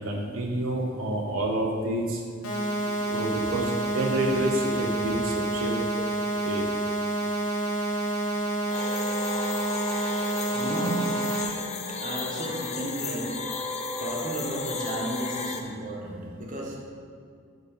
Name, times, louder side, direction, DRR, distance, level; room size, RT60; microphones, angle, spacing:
voice 1, 0.0-2.2 3.0-5.7 6.4-6.6, right 1 dB, 75° right, -1 dB, 1.0 m, -28 dB
sound 1, 2.4-11.4, right 2 dB, 80° left, 1.3 m, -28 dB
sound 2, 8.7-15.6, left 4 dB, 35° left, 0.6 m, -34 dB
voice 2, 8.7-9.6 10.5-16.8, right 1 dB, 40° right, -2 dB, 1.3 m, -35 dB
10.5 x 4.0 x 5.6 m, 2.3 s
head